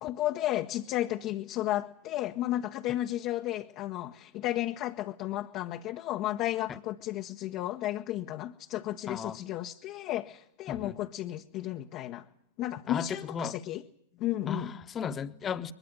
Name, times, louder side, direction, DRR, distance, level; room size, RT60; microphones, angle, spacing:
voice 1, 0.0-12.2 12.6-13.8 14.2-14.7, left 14 dB, 35° left, 3 dB, 1.2 m, -33 dB
voice 2, 9.1-9.4 10.7-11.0 12.9-13.6 14.5-15.7, left 7 dB, 20° left, 10 dB, 1.4 m, -35 dB
22.5 x 22.5 x 9.6 m, 0.66 s
figure-of-eight pair, 100°, 0 cm